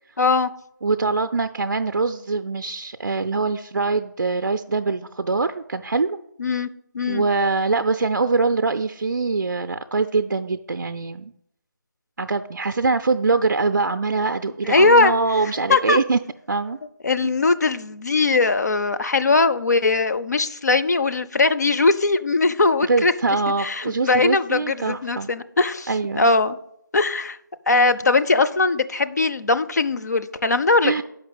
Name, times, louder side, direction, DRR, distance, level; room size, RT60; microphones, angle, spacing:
voice 1, 0.2-0.5 6.4-6.7 6.9-7.2 14.6-15.1 15.7-16.0 17.0-23.1 23.6-26.6 26.9-27.4 27.7-31.0, left 3 dB, 55° left, 11 dB, 0.5 m, -20 dB
voice 2, 0.8-6.2 7.1-11.3 12.2-16.2 16.5-16.8 17.2-17.3 22.8-25.3 25.9-26.2 30.8-31.0, right 3 dB, 60° right, 8 dB, 0.4 m, -23 dB
6.8 x 5.2 x 7.0 m, 0.76 s
figure-of-eight pair, 155°, 11 cm